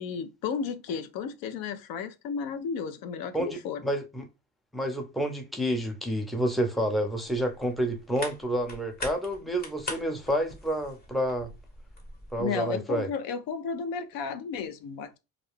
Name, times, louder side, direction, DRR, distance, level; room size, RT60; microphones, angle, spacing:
voice 1, 0.0-3.8 12.4-15.2, left 6 dB, 75° left, 0.6 m, -33 dB
voice 2, 3.3-4.3 4.7-11.5 12.3-13.1, equal, ahead, 0.6 m, -29 dB
sound 1, 7.3-12.4, left 2 dB, 25° left, 0.9 m, -42 dB
2.5 x 2.2 x 3.2 m
cardioid pair, 105°, 35 cm